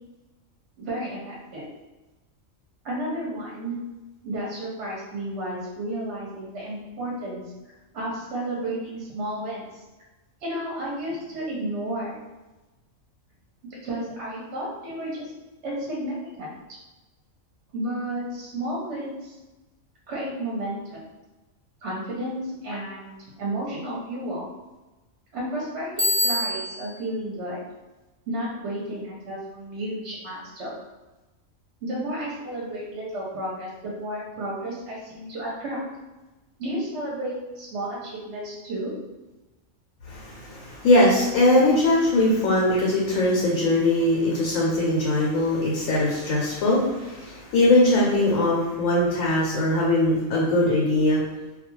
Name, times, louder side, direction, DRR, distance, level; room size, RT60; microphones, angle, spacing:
voice 1, 0.8-1.7 2.8-3.8 4.2-7.4 7.9-9.8 10.4-12.2 13.7-15.3 15.6-16.5 17.7-19.3 20.1-21.0 21.8-24.5 25.3-27.6 28.3-30.7 31.8-35.8 36.6-38.9, right 1 dB, 65° right, -4 dB, 0.8 m, -32 dB
Bicycle bell, 26.0-26.9, left 1 dB, 40° right, 0.4 m, -24 dB
voice 2, 40.1-51.2, left 1 dB, 80° left, -4 dB, 1.0 m, -21 dB
2.3 x 2.3 x 3.0 m, 1.1 s
omnidirectional pair, 1.4 m